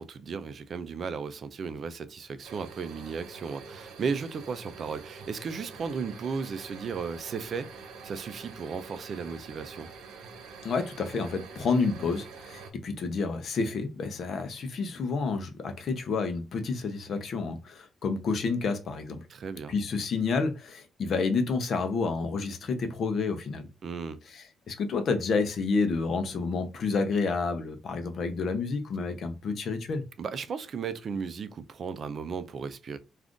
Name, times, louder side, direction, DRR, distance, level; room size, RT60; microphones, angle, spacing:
voice 1, 0.0-9.9 19.3-19.7 23.8-24.2 30.2-33.0, right 5 dB, 50° right, 0.4 m, -35 dB
sound 1, 2.4-12.7, right 5 dB, 90° right, 0.6 m, -46 dB
voice 2, 10.6-19.2 19.7-23.7 24.3-30.0, left 4 dB, 60° left, 0.6 m, -29 dB
2.4 x 2.4 x 3.6 m
cardioid pair, 90°, 0 cm